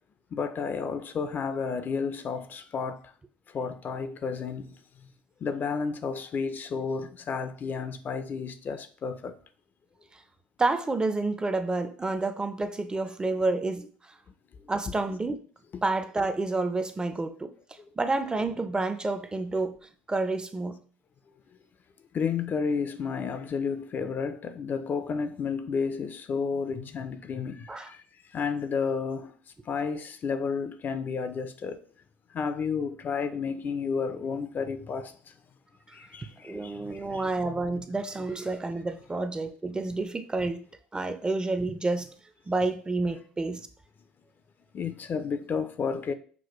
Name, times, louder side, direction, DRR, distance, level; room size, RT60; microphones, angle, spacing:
voice 1, 0.3-3.0 3.5-4.8 5.4-9.4 22.1-29.3 29.7-31.8 32.3-35.3 35.9-37.6 44.7-46.1, left 5 dB, 40° left, 0.4 m, -32 dB
voice 2, 10.6-14.1 14.7-15.4 15.8-17.5 18.0-19.8 20.1-20.8 27.7-27.9 36.4-40.6 40.9-42.1 42.5-43.7, right 3 dB, 15° right, 0.5 m, -29 dB
6.0 x 2.2 x 3.0 m
hypercardioid pair, 75°, 5 cm